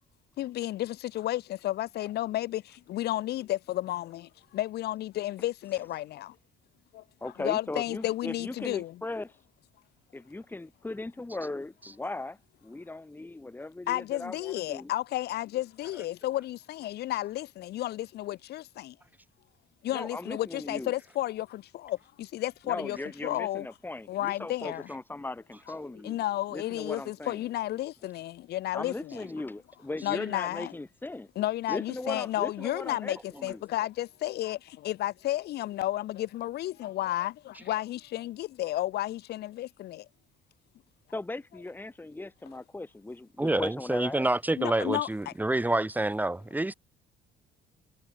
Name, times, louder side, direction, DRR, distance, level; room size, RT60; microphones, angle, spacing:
voice 1, 0.4-6.3 6.9-9.0 13.9-18.9 19.8-23.0 23.2-23.7 24.1-24.9 26.0-29.3 30.0-30.7 31.3-40.1 44.6-45.3, left 14 dB, 75° left, 5.1 m, -32 dB
voice 2, 7.2-9.3 10.1-14.9 19.9-20.9 22.7-26.2 26.5-27.4 28.7-31.3 31.7-33.6 41.1-44.3, left 2 dB, 10° left, 3.1 m, -38 dB
voice 3, 43.4-46.7, right 2 dB, 10° right, 3.5 m, -27 dB
cardioid pair, 110°, 17 cm